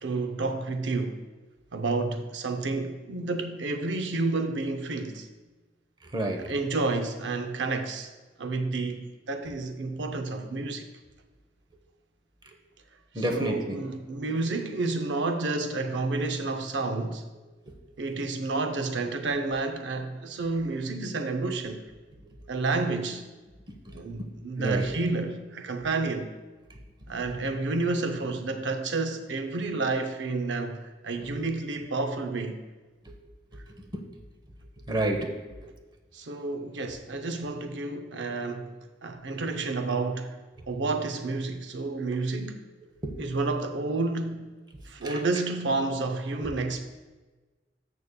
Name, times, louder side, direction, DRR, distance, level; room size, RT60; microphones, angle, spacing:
voice 1, 0.0-1.2 1.7-5.3 6.4-8.1 8.4-10.9 13.2-17.2 18.0-21.8 22.5-23.2 23.9-26.3 27.1-32.6 36.1-38.8 39.0-40.4 40.7-42.6 43.2-44.5 44.9-46.9, right 3 dB, 80° right, 0.6 m, -30 dB
voice 2, 6.1-6.5 13.1-13.8 23.9-24.0 24.6-24.9 34.9-35.3 43.0-43.3 45.0-45.1, right 1 dB, 25° right, 0.9 m, -29 dB
13.0 x 6.9 x 2.2 m
head